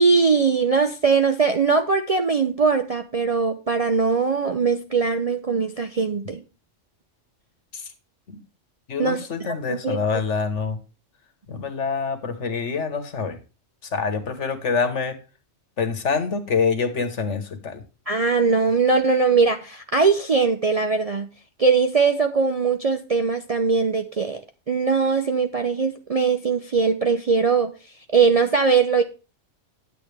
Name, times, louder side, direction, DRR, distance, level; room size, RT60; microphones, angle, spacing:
voice 1, 0.0-6.4 9.0-10.0 18.1-21.3 21.6-24.4 24.7-27.7 28.1-29.0, right 4 dB, 45° right, 0.5 m, -21 dB
voice 2, 8.9-10.8 11.5-13.4 13.9-15.1 15.8-17.8, left 5 dB, 70° left, 1.6 m, -26 dB
9.9 x 8.4 x 3.4 m
omnidirectional pair, 1.3 m